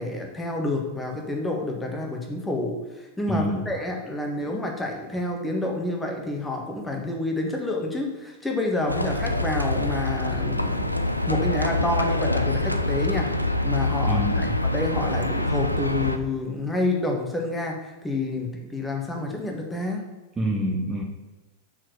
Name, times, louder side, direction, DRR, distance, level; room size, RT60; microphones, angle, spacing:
voice 1, 0.0-11.0 11.3-13.3 13.6-20.1, left 2 dB, 10° left, 1 dB, 1.4 m, -29 dB
voice 2, 3.3-3.6 14.1-14.5 20.4-21.0, right 1 dB, 20° right, 0 dB, 1.0 m, -27 dB
Livestock farm animals working animals, 8.9-16.2, left 2 dB, 90° left, 0.5 m, -25 dB
6.0 x 4.6 x 6.1 m, 1.2 s
figure-of-eight pair, 90°, 0 cm